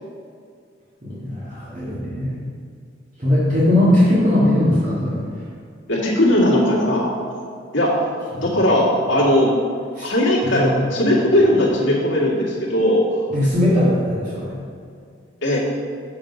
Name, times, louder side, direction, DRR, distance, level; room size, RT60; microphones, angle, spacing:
voice 1, 1.0-2.4 3.2-5.2 8.3-8.5 10.0-10.1 10.5-10.7 13.3-14.6, left 1 dB, 40° right, -10 dB, 1.7 m, -19 dB
voice 2, 5.9-7.1 7.7-9.5 10.0-13.3 15.4-15.6, left 1 dB, 75° left, -4 dB, 1.9 m, -18 dB
6.9 x 5.8 x 5.3 m, 2.3 s
head